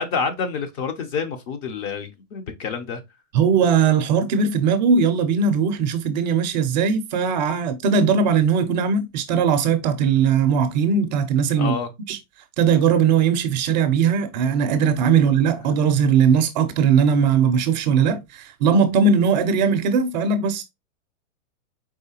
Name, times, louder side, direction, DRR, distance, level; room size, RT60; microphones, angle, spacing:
voice 1, 0.0-3.0 11.6-11.9, left 5 dB, 30° left, 0.5 m, -28 dB
voice 2, 3.3-11.7 12.1-12.2 12.6-20.6, right 6 dB, 35° right, 0.4 m, -19 dB
4.7 x 3.2 x 2.8 m
hypercardioid pair, 135°, 41 cm